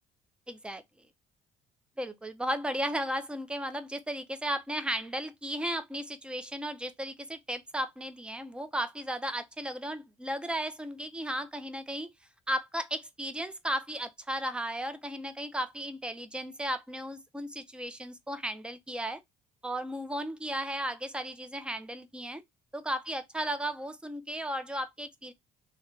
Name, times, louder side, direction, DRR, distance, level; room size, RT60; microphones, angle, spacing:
voice 1, 0.5-0.8 2.0-12.1 12.5-19.2 19.6-22.4 22.7-25.3, equal, 5° right, 0.5 m, -35 dB
3.2 x 2.2 x 3.6 m
cardioid pair, 110°, 17 cm